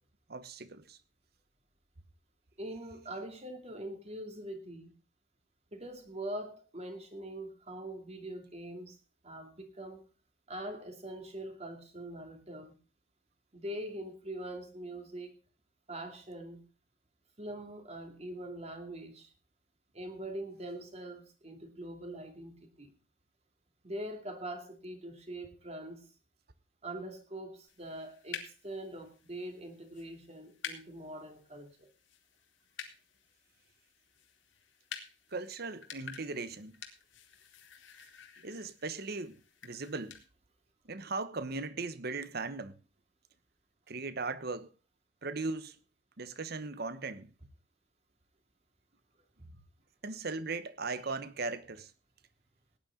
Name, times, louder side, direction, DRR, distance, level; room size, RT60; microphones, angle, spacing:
voice 1, 0.3-1.0 35.3-36.8 38.4-40.2 40.8-42.7 43.9-44.7 45.2-45.8 46.2-47.3 50.0-51.9, right 3 dB, 55° right, 1.1 m, -38 dB
voice 2, 2.6-5.0 5.7-9.0 9.2-10.0 10.5-12.8 13.5-15.4 15.9-16.6 17.4-19.3 19.9-22.9 23.8-26.1 26.8-31.9 49.4-49.6 51.0-51.2, right 1 dB, 35° right, 2.6 m, -43 dB
sound 1, 27.7-40.2, left 7 dB, 85° left, 2.2 m, -50 dB
17.5 x 10.0 x 3.8 m
head